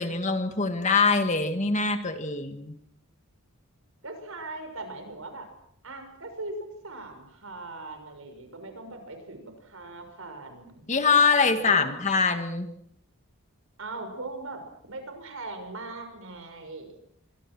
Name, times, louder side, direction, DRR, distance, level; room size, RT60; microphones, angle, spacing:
voice 1, 0.0-2.8 10.9-12.7, left 4 dB, 35° left, 8 dB, 2.0 m, -24 dB
voice 2, 4.0-5.5 5.8-10.8 11.5-11.9 13.8-16.9, right 2 dB, 70° right, 7 dB, 6.1 m, -40 dB
26.5 x 24.5 x 6.3 m, 0.69 s
head